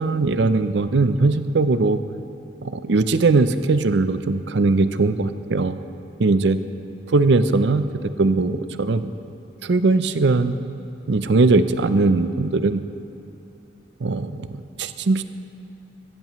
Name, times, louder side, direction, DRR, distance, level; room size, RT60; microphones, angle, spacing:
voice 1, 0.0-2.0 2.6-5.8 6.2-6.6 7.1-9.1 9.6-10.6 11.1-12.9 14.0-15.2, right 3 dB, 70° right, 12 dB, 0.5 m, -20 dB
16.0 x 14.0 x 3.1 m, 2.9 s
head